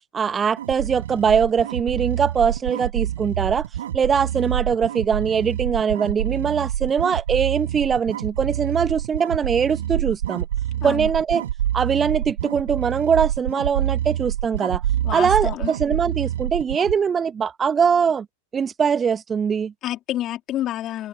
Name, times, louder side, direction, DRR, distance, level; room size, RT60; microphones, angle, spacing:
voice 1, 0.1-3.6 3.9-10.4 10.8-11.4 11.7-14.8 15.1-18.2 18.5-19.7, right 6 dB, 20° right, 1.4 m, -22 dB
sound 1, 0.6-17.0, right 11 dB, 60° right, 3.0 m, -27 dB
voice 2, 15.0-15.7 19.8-21.1, left 13 dB, 30° left, 3.6 m, -28 dB
figure-of-eight pair, 90°, 0 cm